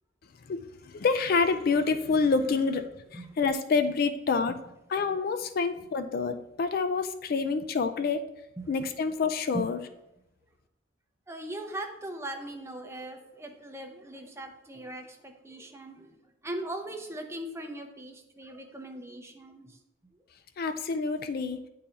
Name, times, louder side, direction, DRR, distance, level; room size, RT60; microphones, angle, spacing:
voice 1, 0.9-4.6 4.9-8.2 8.7-9.8 20.6-21.6, left 4 dB, 55° left, 9 dB, 0.4 m, -27 dB
voice 2, 11.3-16.1 16.4-19.7, right 1 dB, 15° right, 4 dB, 0.6 m, -39 dB
9.6 x 3.8 x 2.8 m, 0.86 s
head